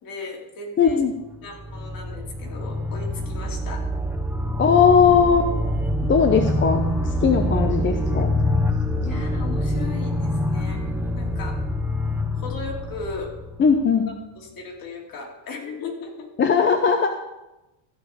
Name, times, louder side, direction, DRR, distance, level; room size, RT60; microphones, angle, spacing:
voice 1, 0.0-1.0 1.4-3.9 9.0-10.8 11.2-11.6 12.3-13.3 14.4-16.3, left 4 dB, 45° left, 0 dB, 2.9 m, -36 dB
voice 2, 0.8-1.1 4.6-5.5 6.1-8.3 13.6-14.1 16.4-17.1, left 6 dB, 25° left, 5 dB, 0.8 m, -18 dB
sound 1, 1.3-14.1, left 1 dB, 5° right, 0.8 m, -25 dB
14.5 x 5.2 x 6.6 m, 1.0 s
supercardioid pair, 110°, 46 cm